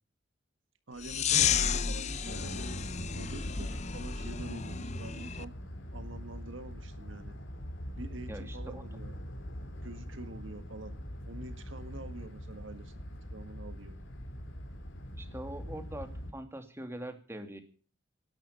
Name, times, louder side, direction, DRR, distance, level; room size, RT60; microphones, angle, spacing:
voice 1, 0.9-2.7 3.1-5.5 5.9-7.4 8.0-9.1 9.8-11.0 11.3-13.0 13.3-14.0, right 2 dB, 75° right, 10 dB, 1.7 m, -46 dB
sound 1, 1.0-5.4, left 7 dB, 35° left, 0.7 m, -32 dB
sound 2, 2.2-16.3, equal, 75° left, 4.5 m, -42 dB
voice 2, 8.3-8.8 15.2-17.6, right 1 dB, 15° right, 7 dB, 2.5 m, -43 dB
18.5 x 12.0 x 5.6 m, 0.39 s
head